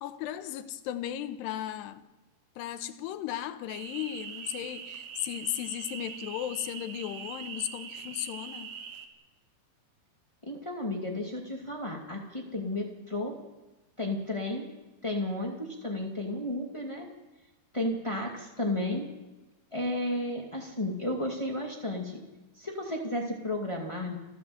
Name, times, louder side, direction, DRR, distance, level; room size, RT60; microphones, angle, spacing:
voice 1, 0.0-2.1 2.6-8.7, left 12 dB, 85° left, 3.1 m, -36 dB
sound 1, 3.7-9.1, right 6 dB, 70° right, 3.4 m, -42 dB
voice 2, 10.4-13.3 14.0-14.6 15.0-17.0 17.7-19.1 19.7-22.2 22.5-24.2, left 1 dB, 25° left, 0.6 m, -33 dB
29.5 x 13.5 x 7.8 m
omnidirectional pair, 4.8 m